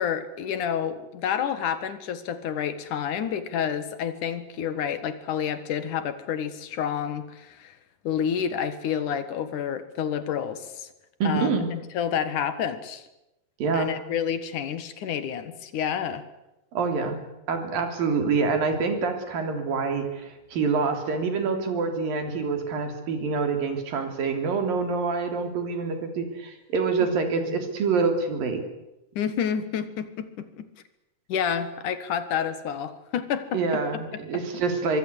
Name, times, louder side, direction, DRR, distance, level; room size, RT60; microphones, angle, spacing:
voice 1, 0.0-7.7 8.0-10.9 11.2-13.0 13.7-16.2 27.3-27.6 29.2-30.7 31.3-34.4, left 8 dB, 65° left, 12 dB, 3.0 m, -29 dB
voice 2, 11.2-11.7 13.6-13.9 16.7-17.2 17.5-28.6 33.5-35.0, right 4 dB, 85° right, 6 dB, 5.0 m, -26 dB
24.5 x 23.0 x 8.3 m, 0.91 s
omnidirectional pair, 3.9 m